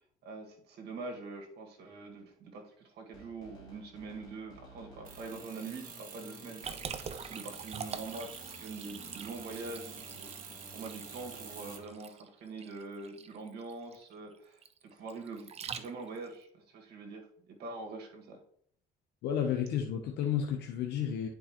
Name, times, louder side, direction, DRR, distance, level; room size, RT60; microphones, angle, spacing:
voice 1, 0.2-14.6 14.9-18.4, right 3 dB, 70° right, 2 dB, 1.8 m, -44 dB
sound 1, 3.1-11.9, left 1 dB, 25° left, 2.8 m, -55 dB
sound 2, 5.1-11.8, right 6 dB, 55° right, 1.4 m, -48 dB
Liquid, 6.6-16.3, right 7 dB, 40° right, 0.6 m, -45 dB
voice 2, 19.2-21.3, left 8 dB, 80° left, 2 dB, 0.8 m, -32 dB
10.5 x 4.6 x 2.9 m, 0.67 s
cardioid pair, 110°, 17 cm